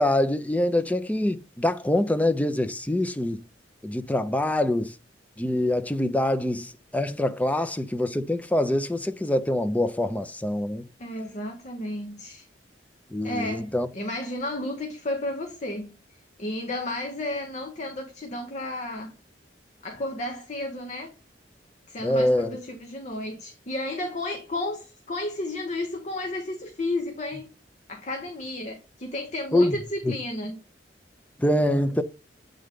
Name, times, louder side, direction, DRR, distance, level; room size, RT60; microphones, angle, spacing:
voice 1, 0.0-3.4 3.8-4.9 5.4-10.9 13.1-13.9 22.0-22.6 29.5-29.8 30.1-30.2 31.4-32.0, left 1 dB, 10° left, 0.5 m, -25 dB
voice 2, 11.0-12.5 13.2-19.2 19.8-21.1 21.9-27.5 27.9-30.6, left 1 dB, 40° left, 0.8 m, -33 dB
7.7 x 3.8 x 3.5 m
head